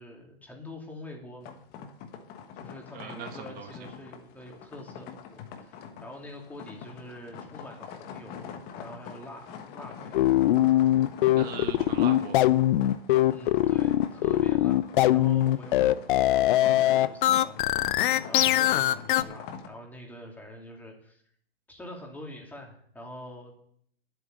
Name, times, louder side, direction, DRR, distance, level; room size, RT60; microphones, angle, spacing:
voice 1, 0.0-1.6 2.6-10.2 13.3-21.2 21.7-23.5, left 1 dB, 5° left, -1 dB, 2.8 m, -45 dB
sound 1, 1.4-19.7, left 7 dB, 30° left, 1.3 m, -44 dB
voice 2, 2.9-3.9 11.3-12.5, right 8 dB, 30° right, 7 dB, 1.3 m, -40 dB
sound 2, 10.1-19.2, left 14 dB, 55° left, 0.6 m, -22 dB
10.0 x 8.2 x 7.9 m, 0.63 s
hypercardioid pair, 140°, 31 cm